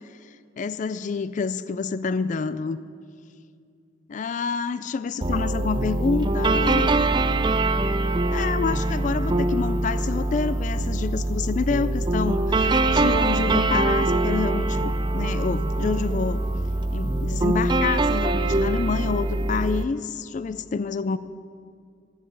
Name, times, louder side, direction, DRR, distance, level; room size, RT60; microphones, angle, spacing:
voice 1, 0.2-2.8 4.1-6.9 8.3-16.4 16.9-21.2, left 5 dB, 40° left, 14 dB, 0.3 m, -28 dB
sound 1, 5.2-19.8, right 2 dB, 25° right, 0.5 m, -23 dB
14.0 x 6.9 x 9.9 m, 2.3 s
head